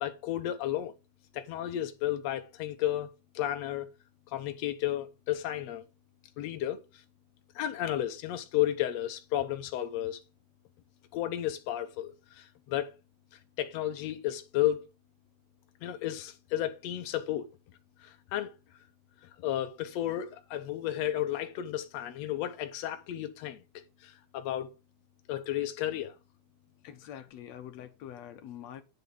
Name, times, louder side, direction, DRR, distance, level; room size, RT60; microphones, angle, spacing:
voice 1, 0.0-0.9 1.3-3.9 4.3-5.8 6.4-6.8 7.5-10.2 11.1-12.9 13.6-14.9 15.8-17.5 18.0-18.5 19.4-24.7 25.3-26.1, left 12 dB, 85° left, 1.4 m, -33 dB
voice 2, 26.8-28.8, left 10 dB, 65° left, 1.7 m, -45 dB
9.7 x 3.9 x 6.9 m
omnidirectional pair, 4.3 m